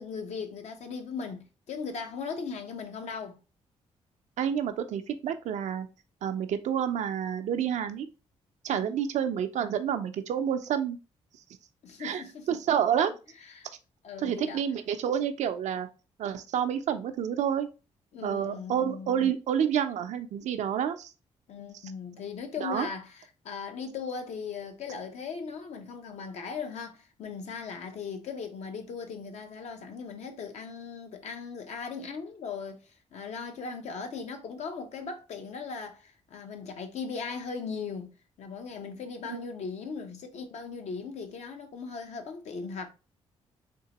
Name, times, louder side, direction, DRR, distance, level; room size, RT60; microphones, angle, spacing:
voice 1, 0.0-3.4 8.7-8.9 11.8-12.6 13.5-13.7 14.0-14.6 18.1-19.3 21.5-32.8 33.1-38.1 38.4-42.9, left 5 dB, 70° left, 0.8 m, -38 dB
voice 2, 4.4-5.9 6.2-8.1 8.6-11.0 12.0-13.1 14.2-15.9 16.2-17.7 18.2-21.1 22.6-22.9 39.3-39.4, right 9 dB, 75° right, 0.5 m, -29 dB
3.7 x 2.8 x 2.9 m
cardioid pair, 75°, 12 cm